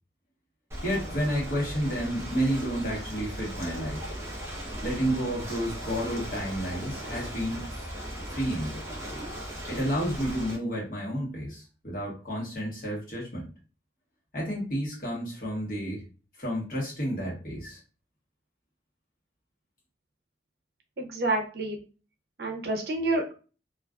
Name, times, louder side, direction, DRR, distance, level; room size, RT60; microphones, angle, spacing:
Ocean, 0.7-10.6, equal, 15° right, 0.5 m, -37 dB
voice 1, 0.8-4.1 4.8-7.6 8.3-8.8 9.7-13.5 14.3-16.0 16.4-17.8, equal, 50° left, -4 dB, 1.1 m, -31 dB
voice 2, 21.0-21.8 22.4-23.3, right 2 dB, 60° right, 2 dB, 0.5 m, -28 dB
2.4 x 2.2 x 2.3 m, 0.36 s
head